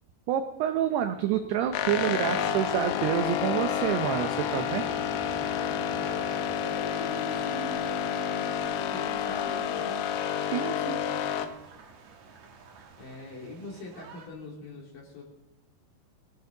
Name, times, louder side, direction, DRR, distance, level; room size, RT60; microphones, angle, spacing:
voice 1, 0.3-4.9 10.5-11.0 12.8-12.9, right 10 dB, 80° right, 7 dB, 2.4 m, -28 dB
sound 1, 1.0-13.7, left 3 dB, 60° left, 4.2 m, -48 dB
sound 2, 1.7-11.5, left 8 dB, 80° left, 3.3 m, -30 dB
sound 3, 4.4-14.3, right 5 dB, 65° right, 1.9 m, -51 dB
voice 2, 5.6-10.2 10.9-11.5 13.0-15.2, left 1 dB, 45° left, -1 dB, 4.1 m, -43 dB
20.0 x 17.0 x 3.9 m, 0.87 s
omnidirectional pair, 5.7 m